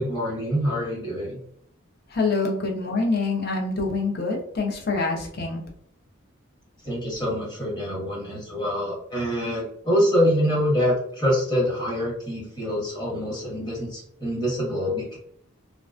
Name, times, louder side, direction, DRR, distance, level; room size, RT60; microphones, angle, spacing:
voice 1, 0.0-1.4 6.8-15.2, equal, 20° left, -4 dB, 0.9 m, -25 dB
voice 2, 2.1-5.6, left 3 dB, 50° left, 1 dB, 0.6 m, -25 dB
2.4 x 2.1 x 2.4 m, 0.67 s
head